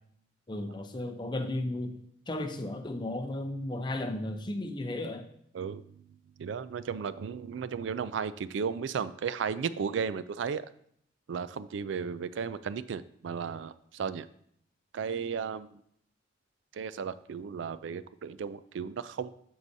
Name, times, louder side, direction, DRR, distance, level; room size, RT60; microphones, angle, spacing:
voice 1, 0.5-2.0 2.3-5.3, left 1 dB, 25° left, 7 dB, 0.5 m, -34 dB
voice 2, 6.4-10.7 11.3-14.3 14.9-15.8 16.7-19.3, right 6 dB, 70° right, 15 dB, 0.3 m, -34 dB
13.0 x 4.7 x 2.7 m, 0.68 s
head